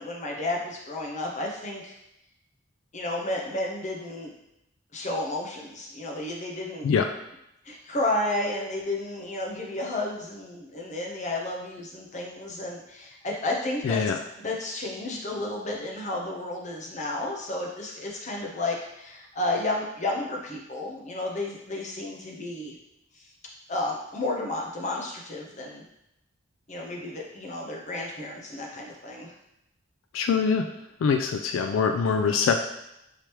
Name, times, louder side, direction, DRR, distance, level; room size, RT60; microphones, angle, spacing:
voice 1, 0.0-1.9 2.9-4.3 4.9-6.9 7.6-14.0 14.4-22.8 23.1-23.3 23.7-25.8 26.7-29.3, left 2 dB, 35° left, -1 dB, 0.7 m, -32 dB
voice 2, 13.8-14.2 30.1-30.6 31.0-32.7, left 5 dB, 85° left, 6 dB, 0.3 m, -23 dB
4.8 x 3.2 x 3.0 m, 0.84 s
head